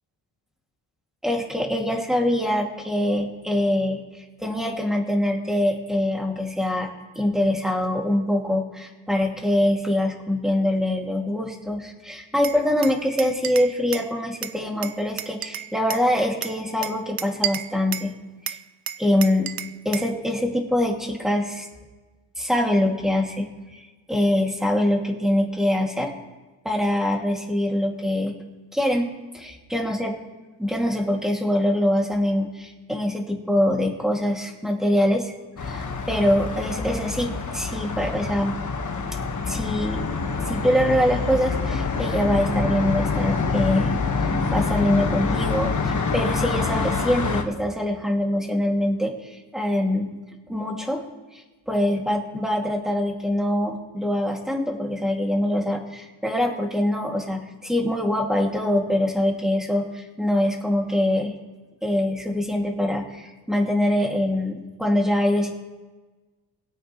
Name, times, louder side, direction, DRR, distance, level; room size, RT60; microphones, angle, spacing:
voice 1, 1.2-4.0 4.4-6.9 7.2-18.1 18.5-18.6 19.0-19.5 19.8-21.7 22.4-26.1 26.6-28.3 28.7-30.1 30.6-35.3 35.6-38.6 39.5-40.0 40.5-50.1 50.5-51.0 51.3-61.3 61.8-65.5, left 1 dB, ahead, 0 dB, 2.3 m, -24 dB
Glass, 12.4-14.1 14.4-16.1 16.4-18.1 18.5-20.1, right 10 dB, 50° right, 0.6 m, -32 dB
sound 1, 35.6-47.4, left 4 dB, 40° left, 1.5 m, -26 dB
21.5 x 8.5 x 3.1 m, 1.2 s
cardioid pair, 80°, 46 cm